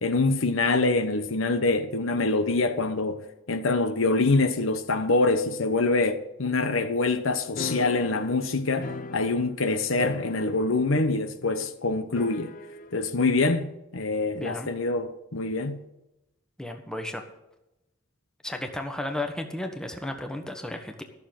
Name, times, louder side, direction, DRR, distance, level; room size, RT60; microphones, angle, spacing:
voice 1, 0.0-12.5 12.9-15.8, left 3 dB, 75° left, 1.0 m, -25 dB
sound 1, 7.6-9.7 10.0-11.0 11.2-11.3 12.2-13.0, left 3 dB, 40° left, 0.6 m, -37 dB
voice 2, 14.3-14.7 16.6-17.2 18.4-21.0, left 1 dB, 5° left, 1.2 m, -33 dB
13.0 x 6.7 x 7.5 m
head